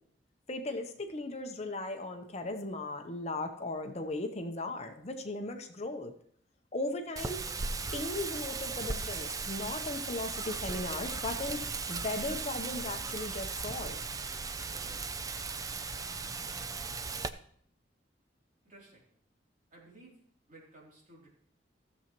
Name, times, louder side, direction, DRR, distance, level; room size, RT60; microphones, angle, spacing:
voice 1, 0.5-6.1 6.7-7.4 7.9-14.0, left 2 dB, 35° left, 6 dB, 0.8 m, -37 dB
Wind, 7.2-17.3, right 4 dB, 20° right, 0.4 m, -37 dB
voice 2, 18.6-19.0 19.7-20.2 20.5-21.3, right 2 dB, 45° right, -3 dB, 3.1 m, -55 dB
15.5 x 7.2 x 3.0 m, 0.62 s
head